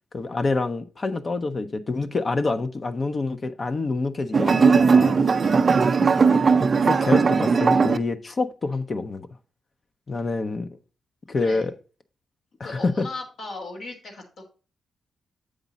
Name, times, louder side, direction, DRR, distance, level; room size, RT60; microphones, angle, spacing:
voice 1, 0.1-5.2 5.9-6.4 6.9-9.3 10.1-10.7 11.3-11.7 12.6-13.1, left 3 dB, 45° left, 0.6 m, -27 dB
sound 1, 4.3-8.0, right 5 dB, 45° right, 0.4 m, -18 dB
voice 2, 11.3-11.7 12.6-14.4, left 3 dB, 75° left, 1.7 m, -37 dB
7.3 x 5.1 x 4.0 m
cardioid pair, 65°, 0 cm